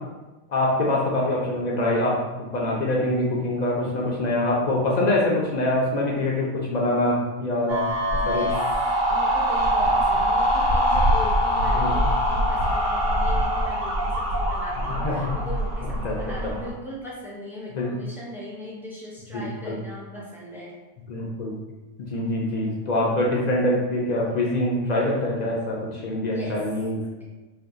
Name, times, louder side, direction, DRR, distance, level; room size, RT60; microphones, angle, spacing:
voice 1, 0.5-7.9 8.3-8.4 11.7-12.0 14.9-15.3 16.0-16.1 17.7-17.9 19.3-19.8 21.1-21.6 22.0-27.2, left 1 dB, 65° left, -3 dB, 0.4 m, -24 dB
sound 1, 7.7-16.7, equal, 85° right, 1.0 m, -23 dB
voice 2, 8.1-8.6 9.1-20.8 26.2-26.6, left 1 dB, 5° right, -6 dB, 0.4 m, -39 dB
2.6 x 2.3 x 3.6 m, 1.1 s
omnidirectional pair, 1.2 m